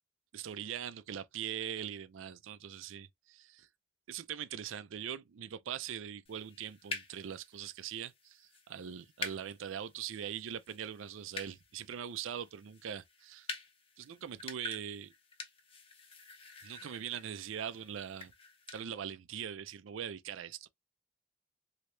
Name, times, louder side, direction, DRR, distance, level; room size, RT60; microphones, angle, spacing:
voice 1, 0.3-3.7 4.1-13.5 14.0-15.1 16.6-18.3 18.7-20.7, right 9 dB, 85° right, 0.4 m, -42 dB
sound 1, 6.3-18.8, left 3 dB, 30° left, 0.7 m, -48 dB
3.2 x 2.8 x 3.1 m
head